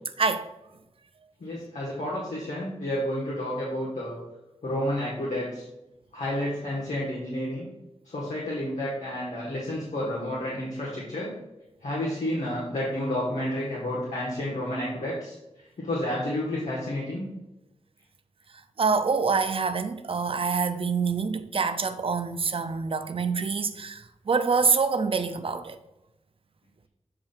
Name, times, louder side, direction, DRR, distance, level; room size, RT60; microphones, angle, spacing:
voice 1, 1.4-4.2 4.6-5.6 6.1-7.7 8.0-11.3 11.8-15.3 15.8-17.3, left 1 dB, 80° left, 1.7 m, -30 dB
voice 2, 18.8-24.0 24.3-25.8, right 5 dB, 50° right, 0.5 m, -26 dB
7.6 x 2.6 x 5.7 m
wide cardioid pair, 80°, 12 cm